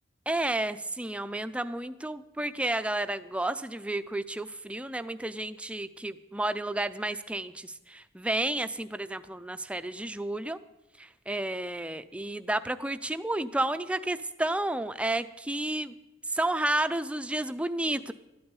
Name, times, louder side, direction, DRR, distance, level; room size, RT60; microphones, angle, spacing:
voice 1, 0.3-10.6 11.0-15.9 16.3-18.1, right 1 dB, 5° right, 12 dB, 0.4 m, -31 dB
12.5 x 8.7 x 9.7 m, 1.0 s
head